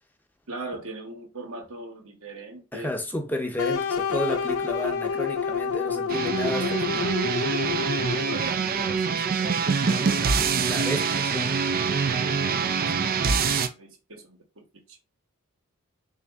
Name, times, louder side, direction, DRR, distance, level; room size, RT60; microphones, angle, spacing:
voice 1, 0.5-2.9 8.2-10.4 12.0-15.0, right 2 dB, 65° right, 1.2 m, -41 dB
voice 2, 2.7-7.1 10.7-11.5, left 1 dB, 10° left, 0.7 m, -32 dB
sound 1, 3.6-8.5, left 6 dB, 65° left, 0.5 m, -28 dB
sound 2, 6.1-13.7, right 5 dB, 45° right, 0.4 m, -25 dB
4.0 x 2.6 x 3.5 m
head